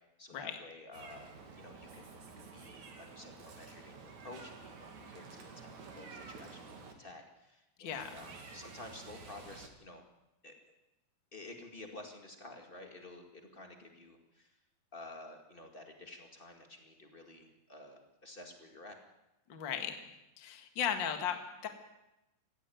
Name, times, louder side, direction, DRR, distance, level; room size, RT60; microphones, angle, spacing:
voice 1, 0.2-2.8 3.1-10.0 10.4-10.6 11.3-14.5 14.9-19.0, left 2 dB, 30° left, 3 dB, 0.9 m, -51 dB
Meow, 0.9-6.9 7.9-9.7, right 4 dB, 50° right, 3.3 m, -51 dB
voice 2, 7.8-8.1 19.5-20.0 20.4-21.7, left 8 dB, 55° left, 6 dB, 1.3 m, -36 dB
18.5 x 15.0 x 9.2 m, 0.93 s
omnidirectional pair, 4.7 m